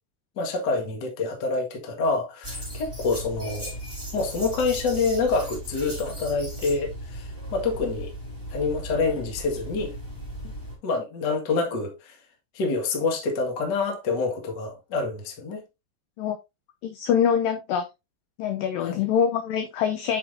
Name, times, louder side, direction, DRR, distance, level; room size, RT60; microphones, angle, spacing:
voice 1, 0.4-3.7 4.1-8.1 8.5-9.9 10.8-12.1 12.5-15.6 18.8-19.0, left 4 dB, 55° left, 1.1 m, -27 dB
sound 1, 2.4-10.8, equal, 5° left, 3.5 m, -37 dB
voice 2, 16.8-17.8 18.4-20.2, left 8 dB, 85° left, 1.9 m, -24 dB
8.4 x 6.1 x 2.6 m
omnidirectional pair, 5.0 m